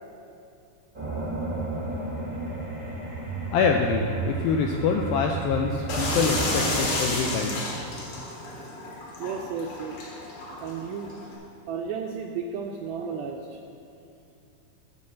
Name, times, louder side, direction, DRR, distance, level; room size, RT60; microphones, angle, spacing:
sound 1, 0.9-6.8, right 3 dB, 15° right, 0.4 m, -32 dB
voice 1, 3.5-7.7, left 5 dB, 85° left, 2 dB, 2.1 m, -25 dB
sound 2, 5.9-11.4, left 2 dB, 55° left, 2.8 m, -31 dB
voice 2, 9.2-10.0 10.6-11.1 11.7-13.6, right 6 dB, 85° right, 2 dB, 2.1 m, -33 dB
10.5 x 5.4 x 7.5 m, 2.6 s
omnidirectional pair, 4.7 m